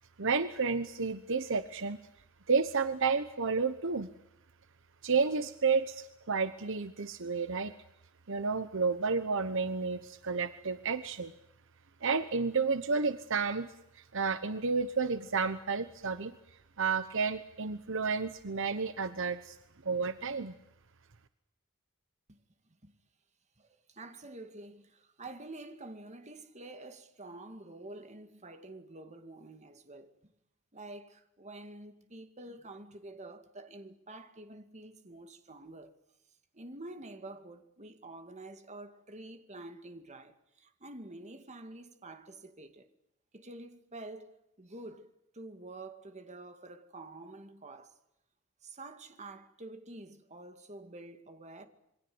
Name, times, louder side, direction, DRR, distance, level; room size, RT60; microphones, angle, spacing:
voice 1, 0.2-2.0 2.5-4.1 5.0-7.7 8.3-11.3 12.0-13.7 13.9-16.4 16.8-19.6 19.8-20.5, right 5 dB, 60° right, 1.1 m, -31 dB
voice 2, 23.6-30.3 30.7-35.9 36.5-42.9 43.3-48.0 48.6-51.7, right 2 dB, 30° right, 2.3 m, -48 dB
27.5 x 23.5 x 8.0 m
head